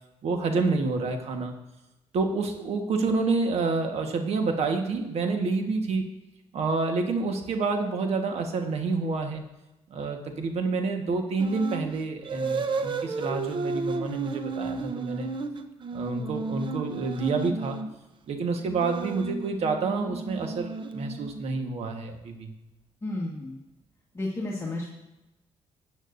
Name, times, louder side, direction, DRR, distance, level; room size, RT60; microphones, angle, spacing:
voice 1, 0.2-1.5 2.1-6.0 6.5-9.4 9.9-15.3 15.9-17.8 18.3-22.5, right 4 dB, 65° right, 4 dB, 1.4 m, -28 dB
sound 1, 11.4-11.9 12.2-17.9 18.6-21.6, right 4 dB, 45° right, 0.8 m, -33 dB
voice 2, 23.0-23.6 24.1-24.9, left 2 dB, 25° left, -3 dB, 1.6 m, -32 dB
13.5 x 8.9 x 2.6 m, 0.98 s
cardioid pair, 90°, 11 cm